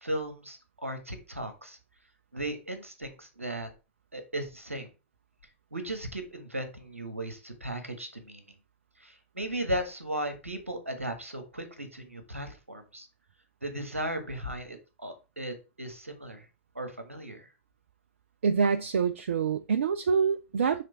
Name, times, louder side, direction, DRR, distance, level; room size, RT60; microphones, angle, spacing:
voice 1, 0.0-1.8 2.3-3.7 4.1-4.9 5.7-8.4 9.0-13.1 13.6-16.4 16.7-17.5, right 1 dB, 90° right, 1.3 m, -36 dB
voice 2, 18.4-20.8, right 6 dB, 70° right, 0.4 m, -26 dB
6.6 x 3.3 x 4.5 m
figure-of-eight pair, 100°, 7 cm